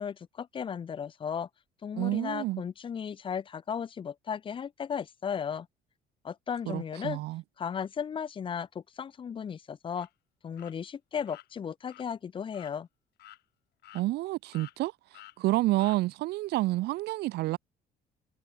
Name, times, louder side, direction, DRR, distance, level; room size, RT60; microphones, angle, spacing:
voice 1, 0.0-1.5 1.8-5.7 6.2-7.2 7.6-10.1 10.4-12.9, left 7 dB, 30° left, 0.5 m, -35 dB
voice 2, 1.9-2.6 6.7-7.4 13.9-14.9 15.4-17.6, right 18 dB, 75° right, 0.7 m, -29 dB
sound 1, 9.9-10.1 10.6-10.7 11.2-11.5 11.9-12.0 12.5-12.8 13.2-13.4 13.8-14.3 14.5-14.8 15.1-15.4 15.8-16.0, left 15 dB, 75° left, 2.1 m, -51 dB
cardioid pair, 110°, 17 cm